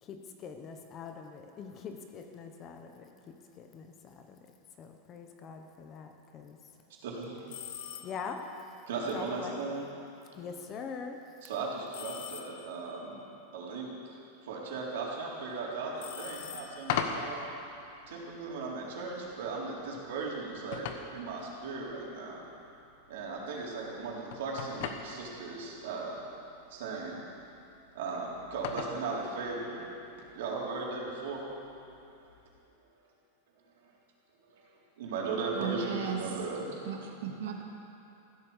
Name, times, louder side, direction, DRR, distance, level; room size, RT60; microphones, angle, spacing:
voice 1, 0.0-4.4 4.8-6.6 8.0-8.5 9.1-9.6 10.3-11.2, left 6 dB, 20° left, 5 dB, 0.9 m, -43 dB
voice 2, 7.0-7.6 7.9-8.1 8.9-9.8 11.4-13.2 13.5-13.9 14.4-17.4 18.1-22.4 23.1-26.2 26.7-27.2 27.9-29.8 30.3-31.5 33.8-33.9 34.5-36.8, right 4 dB, 65° right, -3 dB, 3.9 m, -37 dB
sound 1, 7.5-8.4 11.9-12.9 16.0-17.1, left 10 dB, 65° left, 1.3 m, -45 dB
sound 2, 16.3-32.6, left 7 dB, 50° left, 1.2 m, -43 dB
voice 3, 35.5-36.2 36.8-37.6, right 8 dB, 80° right, 1 dB, 2.2 m, -36 dB
15.5 x 12.5 x 7.2 m, 2.9 s
supercardioid pair, 175°, 0 cm